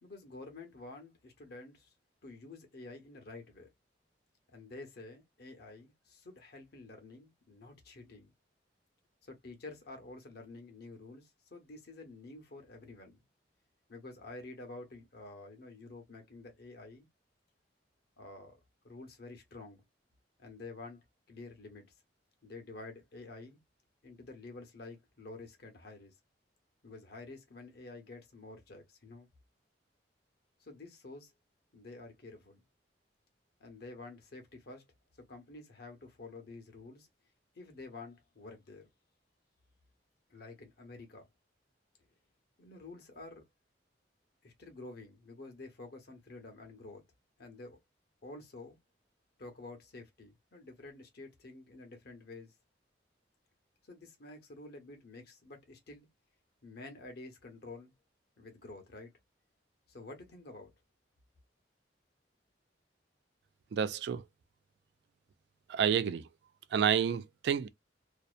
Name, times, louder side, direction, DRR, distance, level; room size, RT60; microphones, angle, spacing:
voice 1, 0.0-1.9 2.2-3.7 4.5-8.3 9.2-13.2 13.9-17.1 18.2-19.8 20.4-21.9 22.4-23.6 24.0-26.1 26.8-29.3 30.6-31.3 31.7-32.6 33.6-34.8 35.3-37.1 37.5-38.9 40.3-41.3 42.6-43.4 44.4-47.0 47.4-47.8 48.2-48.8 49.4-52.5 53.8-56.1 56.6-57.9 58.4-59.1 59.9-60.7, left 2 dB, 60° left, 0.9 m, -49 dB
voice 2, 63.7-64.2 65.7-66.2 66.7-67.7, right 8 dB, 65° right, 0.3 m, -29 dB
2.7 x 2.1 x 2.4 m
head